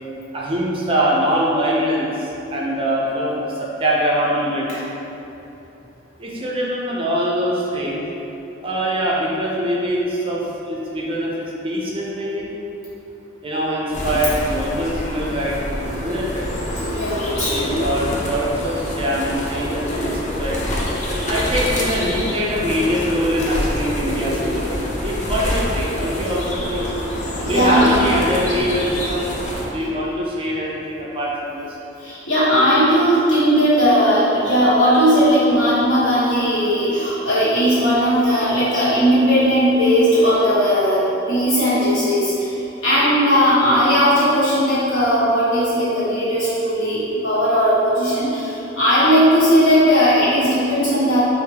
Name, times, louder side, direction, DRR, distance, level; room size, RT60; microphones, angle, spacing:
voice 1, 0.3-2.1 2.5-4.7 6.2-8.0 8.6-10.4 10.7-12.5 13.4-16.4 17.5-20.8 21.3-26.8 27.5-29.2 29.6-31.7 42.9-43.0, equal, 30° right, -4 dB, 0.5 m, -23 dB
sound 1, 13.9-29.6, left 1 dB, 40° left, 0.5 m, -26 dB
voice 2, 16.8-17.8 27.4-28.0 32.0-41.0 41.3-42.3 42.8-48.4 48.8-51.2, equal, 85° left, -11 dB, 1.4 m, -17 dB
3.5 x 2.6 x 3.3 m, 2.9 s
head